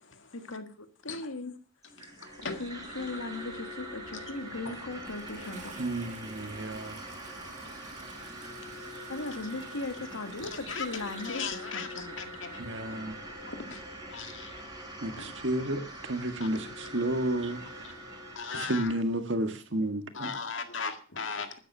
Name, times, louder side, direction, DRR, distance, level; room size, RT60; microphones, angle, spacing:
voice 1, 0.3-1.6 2.6-5.7 9.1-12.1, left 2 dB, 85° left, 1.8 m, -38 dB
sound 1, 1.8-18.8, right 1 dB, 15° right, 4.0 m, -43 dB
voice 2, 2.0-2.6 7.4-7.6 10.4-10.9 11.2-12.6 13.5-13.8 14.1-14.6 15.2-15.3 18.3-18.9 20.1-21.6, left 5 dB, 60° left, 2.0 m, -38 dB
Toilet flush, 4.0-12.5 13.5-13.6, right 4 dB, 35° right, 2.0 m, -52 dB
voice 3, 5.8-7.0 12.6-13.2 15.0-17.9 18.5-20.3, right 1 dB, 60° right, 1.7 m, -32 dB
12.5 x 10.0 x 6.1 m
head